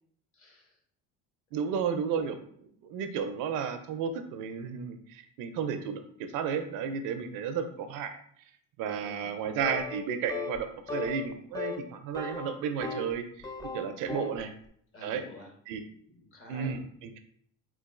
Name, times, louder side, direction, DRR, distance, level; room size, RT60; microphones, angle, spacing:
voice 1, 0.3-0.8 8.8-9.3 14.2-14.5 14.9-15.5 16.0-16.8, left 1 dB, 40° left, 0 dB, 1.1 m, -50 dB
voice 2, 1.5-2.4 2.8-8.1 8.8-13.5 13.7-14.5 15.0-15.2 15.7-15.8 16.5-17.2, right 7 dB, 70° right, 8 dB, 0.5 m, -33 dB
sound 1, 9.6-10.0 10.3-10.6 10.9-11.3 11.5-11.8 12.1-13.1 13.4-14.4, left 4 dB, 10° left, 0.3 m, -36 dB
3.8 x 2.4 x 2.4 m, 0.64 s
supercardioid pair, 100°, 34 cm